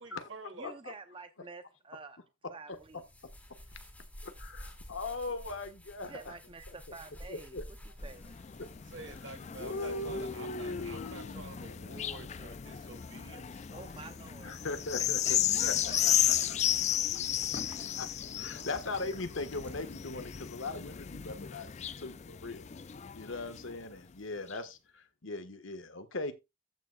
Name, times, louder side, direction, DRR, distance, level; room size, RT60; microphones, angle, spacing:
voice 1, 0.0-0.7 8.8-13.7, right 2 dB, 70° right, 2.6 m, -48 dB
voice 2, 0.5-2.2 2.5-3.0 6.1-7.6 8.0-8.4 13.7-14.6 15.3-16.5 16.8-16.9, right 4 dB, 25° right, 0.6 m, -49 dB
sound 1, 2.7-20.0, equal, 10° left, 2.3 m, -54 dB
voice 3, 4.2-6.2 7.3-7.7 8.6-8.7 9.6-11.4 14.4-16.6 17.9-18.1 18.4-21.7 22.0-22.7 23.1-26.3, left 2 dB, 80° left, 1.4 m, -39 dB
sound 2, 8.0-23.9 24.5-24.6, left 11 dB, 35° left, 0.4 m, -34 dB
14.5 x 6.6 x 2.3 m
head